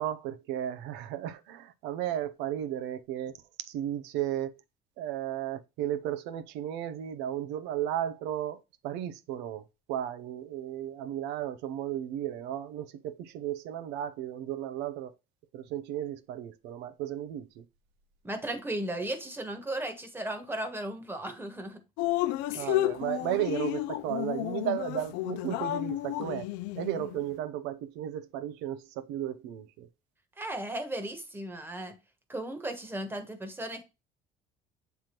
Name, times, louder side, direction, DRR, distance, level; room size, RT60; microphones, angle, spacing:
voice 1, 0.0-3.3 3.7-4.5 5.0-9.6 9.9-15.1 15.5-17.6 22.5-26.5 26.8-29.9, right 11 dB, 85° right, 0.8 m, -34 dB
voice 2, 18.2-21.8 22.5-22.7 30.4-32.0 32.3-33.8, right 1 dB, 10° right, 1.3 m, -36 dB
Drip, 22.0-27.2, left 16 dB, 90° left, 0.4 m, -32 dB
7.6 x 3.5 x 4.4 m
cardioid pair, 115°, 17 cm